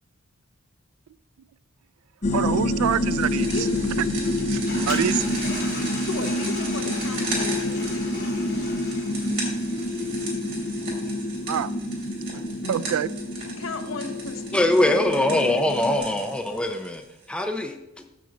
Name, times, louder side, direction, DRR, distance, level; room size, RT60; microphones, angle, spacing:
sound 1, 2.2-16.0, left 1 dB, 35° left, 0.7 m, -28 dB
voice 1, 2.3-3.7 4.0-4.1 4.5-4.6 4.9-5.2 11.5-11.7 12.7-13.1, right 9 dB, 85° right, 18 dB, 0.3 m, -25 dB
sound 2, 2.9-17.2, right 3 dB, 55° right, 3.3 m, -37 dB
voice 2, 3.4-3.9 6.0-8.1 12.6-13.0 13.6-14.7 15.2-15.6, left 3 dB, 65° left, 6 dB, 0.8 m, -35 dB
Toilet flush, 4.2-11.2, left 2 dB, 50° left, 3.2 m, -37 dB
voice 3, 14.5-18.0, left 1 dB, 5° left, 4 dB, 0.5 m, -23 dB
6.3 x 5.2 x 7.0 m, 0.93 s
head